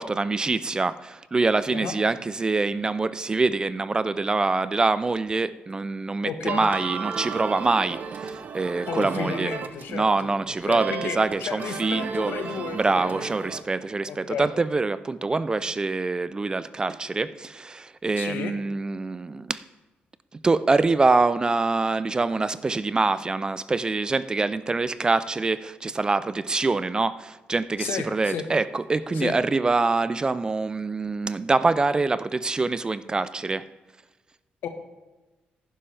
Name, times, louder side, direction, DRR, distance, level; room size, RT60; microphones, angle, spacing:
voice 1, 0.0-9.5 9.9-12.3 12.7-19.6 20.4-33.6, right 3 dB, 25° right, 15 dB, 0.4 m, -25 dB
voice 2, 6.2-6.7 8.9-10.3 10.6-13.3 14.1-14.5 18.2-18.5 27.8-28.4 29.1-29.4 34.6-34.7, left 7 dB, 75° left, 7 dB, 1.2 m, -33 dB
sound 1, 6.5-10.0 10.3-13.6, right 6 dB, 50° right, 0.7 m, -34 dB
11.0 x 10.0 x 3.3 m, 1.2 s
cardioid pair, 105°, 3 cm